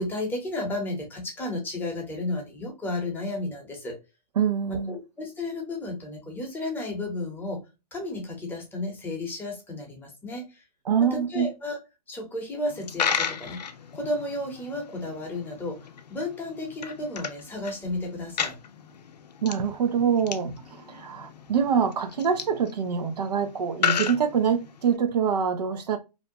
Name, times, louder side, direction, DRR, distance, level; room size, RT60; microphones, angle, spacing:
voice 1, 0.0-4.0 4.7-7.6 7.9-10.6 11.3-11.8 12.1-13.6 13.9-18.6, left 2 dB, 10° left, 0.8 m, -33 dB
voice 2, 4.4-5.0 10.9-11.5 19.4-20.5 20.8-26.0, right 7 dB, 80° right, 0.6 m, -25 dB
Coin (dropping), 12.7-25.0, left 7 dB, 90° left, 0.5 m, -34 dB
2.7 x 2.1 x 2.6 m
hypercardioid pair, 130°, 20 cm